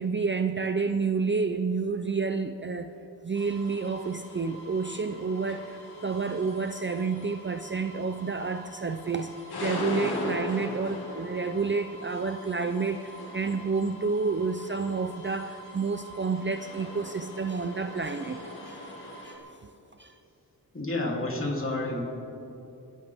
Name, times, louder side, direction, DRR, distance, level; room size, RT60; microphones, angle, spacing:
voice 1, 0.0-2.9 3.2-9.3 9.6-18.8 19.2-19.4 20.0-20.1, right 4 dB, 30° right, 8 dB, 0.5 m, -29 dB
sound 1, 3.4-19.4, left 1 dB, 80° left, 2.2 m, -40 dB
voice 2, 20.7-22.0, left 2 dB, 35° left, -2 dB, 3.1 m, -30 dB
26.0 x 11.0 x 3.6 m, 2.7 s
wide cardioid pair, 80°, 38 cm